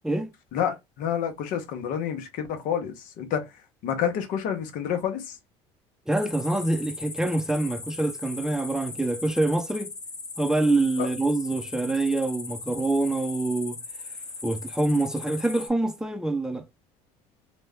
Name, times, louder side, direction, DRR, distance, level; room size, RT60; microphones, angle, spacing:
voice 1, 0.5-3.5 3.8-5.4 11.0-11.1, left 8 dB, 70° left, 0.9 m, -29 dB
sound 1, 6.1-15.7, left 4 dB, 25° left, 0.9 m, -39 dB
voice 2, 6.1-9.9 10.4-13.8 14.4-16.7, right 2 dB, 5° right, 0.6 m, -25 dB
3.0 x 2.2 x 3.5 m
supercardioid pair, 80°, 14 cm